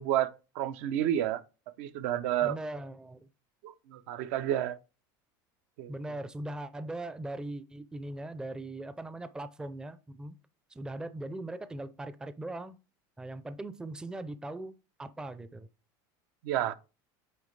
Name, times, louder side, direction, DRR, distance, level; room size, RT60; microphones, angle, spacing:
voice 1, 0.0-1.4 1.8-2.6 3.6-4.8 5.8-5.9 16.4-16.7, right 12 dB, 75° right, 0.7 m, -30 dB
voice 2, 2.4-3.3 5.9-10.4 10.7-12.8 13.2-15.7, right 1 dB, 5° right, 0.5 m, -40 dB
9.1 x 3.2 x 3.2 m
supercardioid pair, 130°, 11 cm